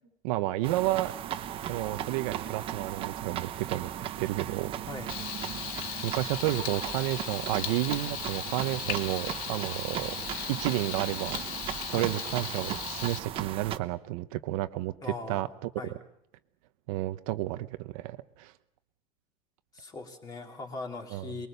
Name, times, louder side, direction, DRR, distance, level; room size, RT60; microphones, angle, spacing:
voice 1, 0.2-1.1 1.7-4.7 6.0-10.2 10.5-11.6 11.9-15.7 16.9-18.5 21.1-21.3, right 16 dB, 65° right, 11 dB, 1.0 m, -31 dB
sound 1, 0.6-13.8, right 11 dB, 30° right, 0.9 m, -37 dB
Frying (food), 5.1-13.2, left 11 dB, 75° left, 1.5 m, -37 dB
voice 2, 15.0-15.5 15.8-15.9 19.7-21.5, left 3 dB, 20° left, 3 dB, 3.1 m, -40 dB
23.5 x 21.5 x 6.8 m, 0.74 s
supercardioid pair, 165°, 20 cm